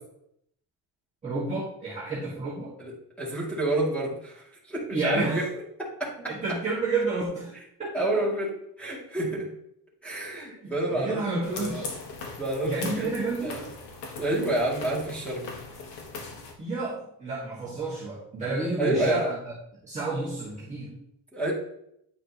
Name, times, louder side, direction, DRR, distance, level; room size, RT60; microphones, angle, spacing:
voice 1, 1.2-2.8 4.9-5.5 6.3-8.2 10.3-11.9 12.6-13.6 16.6-19.5 19.8-21.0, right 3 dB, 15° right, -9 dB, 1.8 m, -31 dB
voice 2, 2.8-5.4 6.0-6.1 7.9-8.5 8.8-9.5 10.0-11.9 12.4-13.1 13.4-13.7 14.2-15.4 18.8-19.3 21.3-21.5, right 1 dB, 5° left, -6 dB, 2.5 m, -29 dB
sound 1, 11.4-16.5, left 4 dB, 75° left, 1.6 m, -40 dB
9.6 x 4.9 x 3.0 m, 0.75 s
cardioid pair, 155°, 41 cm